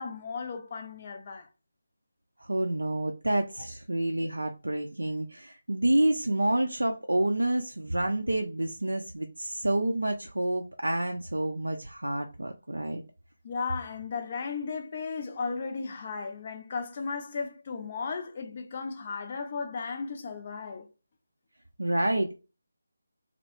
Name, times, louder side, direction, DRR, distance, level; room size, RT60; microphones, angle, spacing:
voice 1, 0.0-1.5 13.4-20.9, left 5 dB, 35° left, 0.4 m, -35 dB
voice 2, 2.4-13.0 21.8-22.4, right 1 dB, 75° right, 0.3 m, -28 dB
2.2 x 2.0 x 3.0 m
figure-of-eight pair, 155°, 0 cm